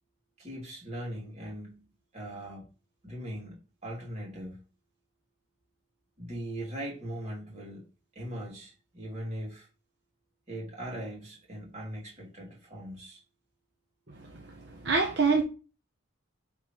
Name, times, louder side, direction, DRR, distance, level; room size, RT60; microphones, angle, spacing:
voice 1, 0.4-2.7 3.0-4.6 6.2-7.9 8.1-9.7 10.5-13.2, right 1 dB, 35° right, 2.7 m, -40 dB
voice 2, 14.2-15.4, right 4 dB, 55° right, 0.9 m, -27 dB
8.6 x 3.8 x 3.1 m
head